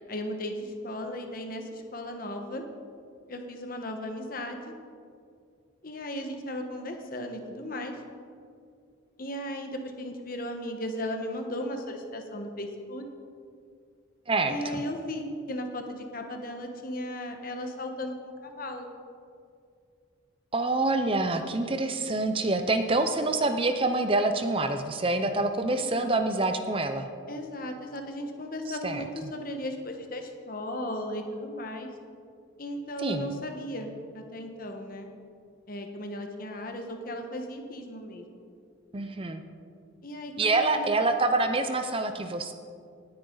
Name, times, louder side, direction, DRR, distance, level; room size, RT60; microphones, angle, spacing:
voice 1, 0.1-2.6 3.3-4.7 5.8-8.0 9.2-13.0 14.5-18.9 25.7-26.3 27.3-31.9 32.6-35.1 35.7-38.5 40.0-41.0, left 1 dB, 45° left, 4 dB, 1.2 m, -36 dB
voice 2, 14.3-14.8 20.5-27.1 28.8-29.0 33.0-33.3 38.9-39.4 40.4-42.5, right 2 dB, 25° right, 7 dB, 0.6 m, -26 dB
19.0 x 8.9 x 3.9 m, 2.3 s
head